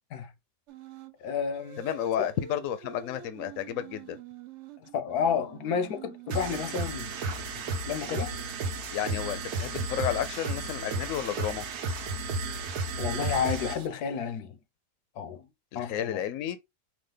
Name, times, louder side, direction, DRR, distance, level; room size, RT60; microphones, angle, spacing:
sound 1, 0.7-1.2 1.5-7.2 7.9-10.9, right 11 dB, 65° right, 0.8 m, -47 dB
voice 1, 1.2-1.8 2.2-2.3 4.9-7.1 7.6-8.3 13.0-14.5 15.2-15.5 15.7-16.2, left 7 dB, 85° left, 1.2 m, -31 dB
voice 2, 1.8-4.2 8.9-11.6 15.7-16.6, left 10 dB, 70° left, 0.9 m, -32 dB
sound 2, 6.3-13.9, right 3 dB, 80° right, 1.3 m, -33 dB
4.9 x 2.4 x 3.7 m
omnidirectional pair, 1.6 m